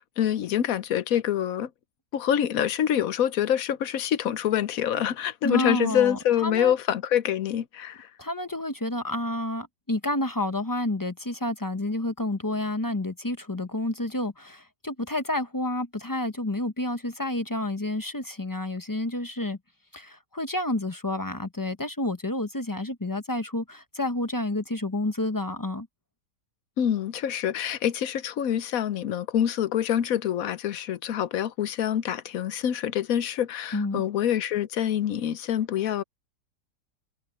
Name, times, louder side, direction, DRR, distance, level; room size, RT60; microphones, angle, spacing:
voice 1, 0.0-1.7 2.1-8.1 26.8-36.0, left 10 dB, 65° left, 1.1 m, -26 dB
voice 2, 5.4-6.7 8.2-19.6 19.9-25.9 33.7-34.0, left 1 dB, 20° left, 0.6 m, -29 dB
omnidirectional pair, 1.7 m